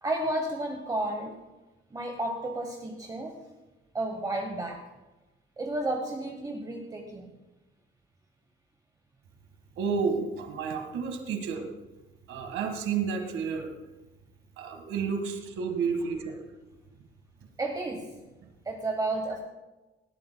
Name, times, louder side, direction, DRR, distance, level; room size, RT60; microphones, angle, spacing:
voice 1, 0.0-1.4 1.9-3.4 3.9-4.8 5.6-7.3 17.6-18.1 18.6-19.4, right 2 dB, 20° right, 2 dB, 1.0 m, -32 dB
voice 2, 9.8-11.7 12.3-13.7 14.6-16.4, right 5 dB, 80° right, 5 dB, 1.7 m, -31 dB
18.0 x 13.5 x 2.2 m, 1.1 s
cardioid pair, 175°, 21 cm